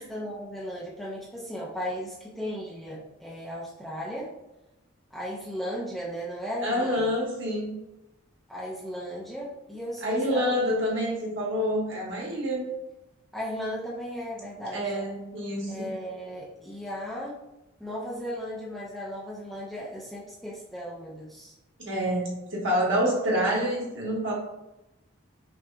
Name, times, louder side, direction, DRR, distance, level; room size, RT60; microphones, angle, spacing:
voice 1, 0.0-4.3 5.1-7.1 8.5-10.5 13.3-14.9 15.7-17.4 17.8-21.5, equal, ahead, -7 dB, 0.6 m, -36 dB
voice 2, 6.6-7.7 10.0-12.6 14.7-15.9 21.8-24.3, equal, 60° right, -4 dB, 1.4 m, -27 dB
5.9 x 2.8 x 2.3 m, 0.94 s
head